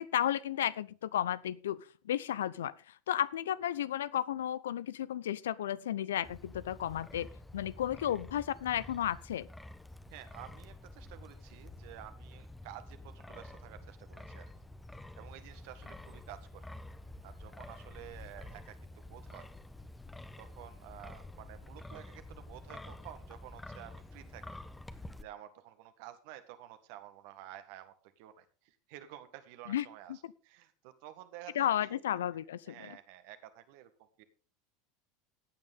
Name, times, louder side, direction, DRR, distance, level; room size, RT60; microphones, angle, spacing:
voice 1, 0.0-7.3 7.5-9.5 29.7-29.9 30.2-30.3 31.6-33.0, left 11 dB, 75° left, 19 dB, 0.6 m, -33 dB
Wind, 6.2-25.2, left 2 dB, 10° left, 1.1 m, -49 dB
voice 2, 10.1-14.5 14.9-16.7 17.2-19.5 20.4-24.6 24.9-30.1 30.4-32.0 32.6-33.9 34.2-34.3, right 13 dB, 60° right, 10 dB, 1.7 m, -51 dB
16.0 x 9.0 x 3.7 m, 0.37 s
figure-of-eight pair, 80°, 0 cm